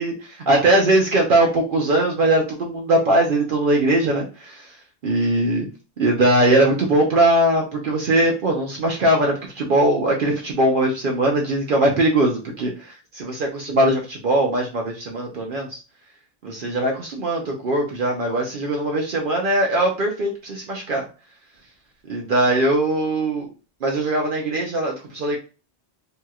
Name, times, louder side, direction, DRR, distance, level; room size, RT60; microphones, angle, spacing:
voice 1, 0.0-4.7 5.0-5.7 6.0-15.8 16.4-21.0 22.1-23.5 23.8-25.4, right 1 dB, 60° right, 0 dB, 0.7 m, -20 dB
3.0 x 2.7 x 2.3 m, 0.34 s
omnidirectional pair, 1.1 m